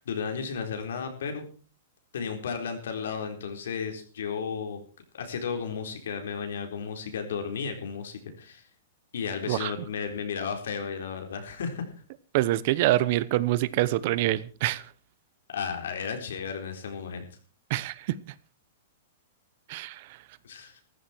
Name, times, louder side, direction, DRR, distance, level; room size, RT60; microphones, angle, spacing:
voice 1, 0.0-1.4 2.1-4.8 5.1-8.6 9.1-11.9 15.5-17.3 20.4-20.8, left 6 dB, 85° left, 5 dB, 4.1 m, -33 dB
voice 2, 12.3-14.8 17.7-18.1 19.7-20.1, right 16 dB, 45° right, 18 dB, 0.9 m, -25 dB
14.5 x 13.5 x 4.5 m, 0.37 s
supercardioid pair, 160°, 0 cm